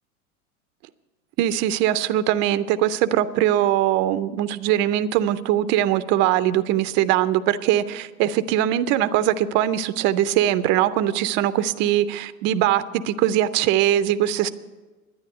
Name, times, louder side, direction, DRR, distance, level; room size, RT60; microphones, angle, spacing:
voice 1, 1.4-14.5, right 12 dB, 30° right, 14 dB, 0.4 m, -21 dB
10.5 x 9.7 x 7.8 m, 1.3 s
hypercardioid pair, 110°, 44 cm